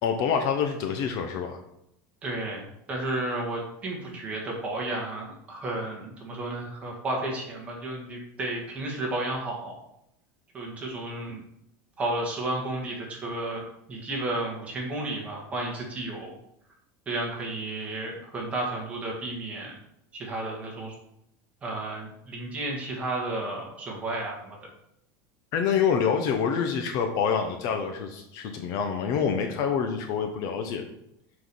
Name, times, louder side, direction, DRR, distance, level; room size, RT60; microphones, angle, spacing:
voice 1, 0.0-1.6 25.5-30.8, left 7 dB, 40° left, 5 dB, 0.8 m, -26 dB
voice 2, 2.2-2.6 2.9-9.7 10.5-11.4 12.0-13.6 13.9-16.3 17.0-19.7 20.1-20.9 21.6-24.6, right 2 dB, 15° right, -2 dB, 1.7 m, -32 dB
6.1 x 4.9 x 5.4 m, 0.79 s
supercardioid pair, 180°, 9 cm